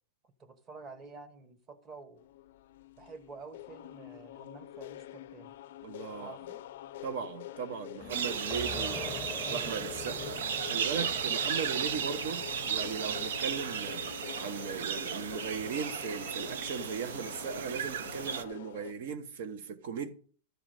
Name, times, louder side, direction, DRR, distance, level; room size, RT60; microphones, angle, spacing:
voice 1, 0.4-2.2 3.0-5.5 6.2-6.6, right 4 dB, 20° right, 1.2 m, -49 dB
sound 1, 2.2-18.9, left 13 dB, 65° left, 0.5 m, -46 dB
voice 2, 5.8-6.4 7.0-9.2 9.5-10.4 10.7-12.4 12.7-14.0 14.4-20.1, right 6 dB, 60° right, 1.2 m, -38 dB
sound 2, 8.0-14.4, left 4 dB, 10° left, 0.7 m, -45 dB
sound 3, 8.1-18.4, right 7 dB, 85° right, 0.9 m, -35 dB
13.0 x 4.8 x 6.6 m
supercardioid pair, 160°, 0 cm